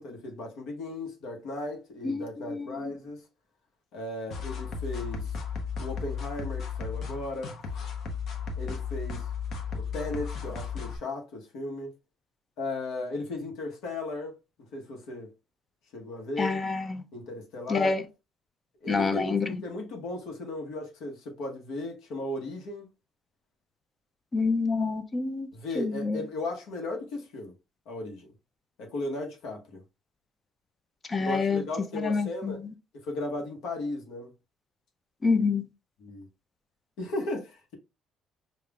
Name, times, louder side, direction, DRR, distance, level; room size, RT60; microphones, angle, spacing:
voice 1, 0.0-3.2 3.9-5.4 5.8-7.5 8.6-9.3 9.7-11.9 12.6-14.4 14.7-15.3 15.9-16.6 17.1-17.9 18.8-22.8 25.5-27.5 27.9-28.3 28.8-29.8 31.2-32.6 33.0-34.3 35.4-35.5 36.0-36.3 37.0-37.7, left 2 dB, 80° left, 1.0 m, -36 dB
voice 2, 2.0-2.9 16.4-17.0 17.7-18.0 18.9-19.5 24.3-25.5 25.8-26.2 31.1-31.6 31.9-32.6 35.2-35.7, left 4 dB, 20° left, 0.4 m, -27 dB
sound 1, 4.3-11.0, left 6 dB, 50° left, 0.7 m, -34 dB
5.1 x 2.3 x 2.3 m
cardioid pair, 160°, 0 cm